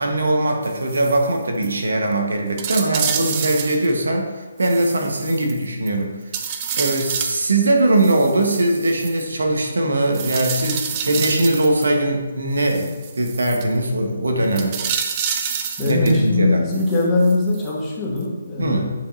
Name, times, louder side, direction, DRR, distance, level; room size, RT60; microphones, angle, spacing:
voice 1, 0.0-6.5 6.7-14.8 15.9-16.6 18.6-18.9, right 1 dB, 80° right, 2 dB, 1.4 m, -20 dB
sound 1, 0.6-1.3 1.6-1.7 2.1-2.2 2.6-3.9 4.6-5.9 6.3-7.4 8.0-9.2 10.1-11.9 12.6-13.6 14.5-16.2 16.7-17.7 18.2-18.3, right 7 dB, 25° right, 0.5 m, -28 dB
voice 2, 14.2-14.5 15.8-18.9, left 2 dB, 15° left, -5 dB, 1.6 m, -21 dB
8.7 x 5.2 x 2.8 m, 1.2 s
hypercardioid pair, 160°, 0 cm